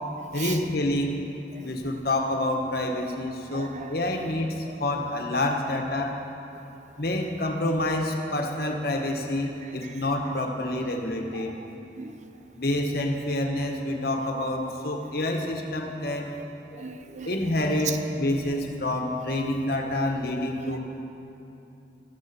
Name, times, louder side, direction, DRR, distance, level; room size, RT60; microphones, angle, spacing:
voice 1, 0.3-1.2 1.6-6.2 7.0-11.6 12.5-16.3 17.2-20.8, left 1 dB, 60° left, 2 dB, 1.6 m, -28 dB
voice 2, 3.5-3.9 4.7-4.8 9.6-10.0 11.3-11.5 12.0-12.3 16.4-17.4 17.8-18.0 18.4-18.5 19.9-20.3 20.6-20.8, right 6 dB, 40° right, 7 dB, 0.8 m, -38 dB
19.0 x 14.0 x 4.5 m, 2.8 s
head